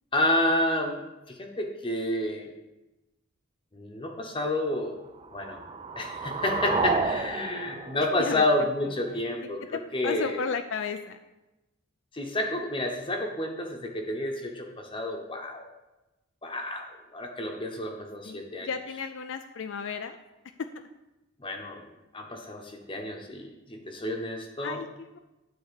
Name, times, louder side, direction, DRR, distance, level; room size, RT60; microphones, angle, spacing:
voice 1, 0.1-1.0 1.3-2.5 3.7-5.0 5.3-5.6 6.0-10.4 12.1-15.7 16.4-18.7 21.4-21.8 22.1-24.8, left 1 dB, 25° left, 2 dB, 0.9 m, -30 dB
sound 1, 5.1-9.2, right 4 dB, 25° right, 0.4 m, -31 dB
voice 2, 8.2-8.7 9.1-9.2 9.7-11.2 18.2-20.2 20.6-20.7 24.6-25.2, left 5 dB, 65° left, 7 dB, 0.4 m, -34 dB
9.7 x 4.2 x 6.8 m, 1.0 s
head